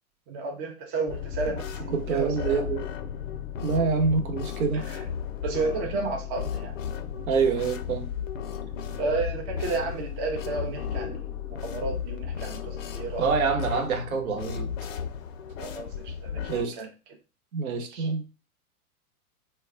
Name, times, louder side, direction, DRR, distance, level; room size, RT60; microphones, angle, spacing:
voice 1, 0.3-2.7 4.7-5.0 5.4-6.7 7.2-7.6 9.0-11.2 11.6-13.3 15.6-16.9 17.9-18.1, right 3 dB, 25° right, 0.5 m, -32 dB
sound 1, 1.1-16.6, left 8 dB, 60° left, 0.6 m, -34 dB
voice 2, 1.9-2.8 3.6-4.8 7.3-8.1 13.2-14.7 16.5-16.7 17.5-18.2, right 5 dB, 70° right, 0.9 m, -26 dB
2.2 x 2.2 x 3.6 m
hypercardioid pair, 110°, 45 cm